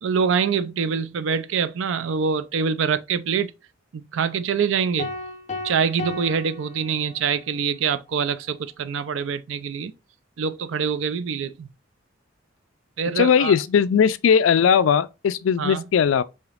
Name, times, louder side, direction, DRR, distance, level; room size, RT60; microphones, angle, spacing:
voice 1, 0.0-3.5 3.9-5.1 5.6-9.9 10.4-11.7 13.0-13.5 15.6-15.8, right 6 dB, 70° right, 0.4 m, -25 dB
sound 1, 5.0-7.5, left 3 dB, 35° left, 0.6 m, -35 dB
voice 2, 13.2-16.2, left 7 dB, 80° left, 0.3 m, -18 dB
5.0 x 2.8 x 2.4 m
head